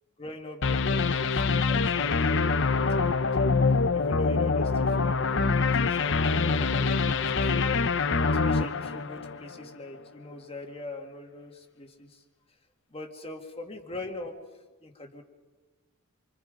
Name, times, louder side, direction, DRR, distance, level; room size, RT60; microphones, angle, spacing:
voice 1, 0.2-3.6 3.9-7.7 8.3-12.2 12.9-14.4 14.8-15.2, left 2 dB, 25° left, 3 dB, 2.1 m, -43 dB
sound 1, 0.6-9.7, left 4 dB, 55° left, 0.7 m, -25 dB
27.5 x 26.0 x 5.3 m, 1.3 s
head